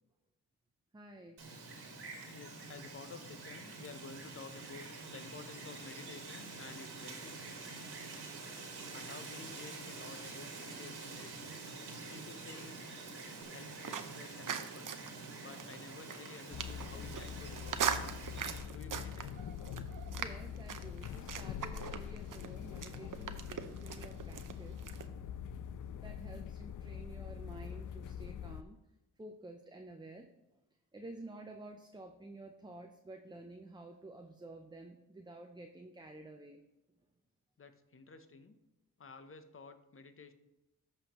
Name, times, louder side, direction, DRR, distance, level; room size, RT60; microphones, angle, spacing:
voice 1, 0.9-1.4 20.1-24.8 25.9-28.8 29.2-30.3 30.9-36.6, right 2 dB, 10° right, 4 dB, 0.6 m, -51 dB
Wind, 1.4-18.6, right 3 dB, 80° right, 1.9 m, -47 dB
voice 2, 2.3-7.5 8.9-11.6 12.1-12.9 13.5-15.1 15.4-18.0 18.7-19.3 37.6-38.6 39.0-40.3, left 4 dB, 35° left, 9 dB, 0.9 m, -52 dB
sound 1, 13.4-25.1, right 7 dB, 55° right, 0.7 m, -42 dB
sound 2, 16.5-28.6, left 8 dB, 55° left, 0.5 m, -44 dB
13.5 x 5.4 x 3.0 m, 0.94 s
cardioid pair, 60°, 39 cm